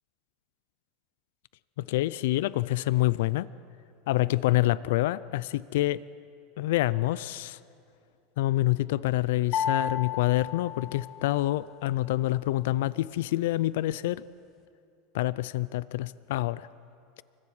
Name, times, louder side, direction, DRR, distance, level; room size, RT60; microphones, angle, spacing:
voice 1, 1.8-3.5 4.1-6.0 6.6-7.6 8.4-14.2 15.1-16.7, left 16 dB, 75° left, 18 dB, 0.5 m, -27 dB
sound 1, 9.5-11.7, left 7 dB, 40° left, 1.5 m, -33 dB
29.0 x 25.5 x 4.9 m, 2.6 s
supercardioid pair, 155°, 0 cm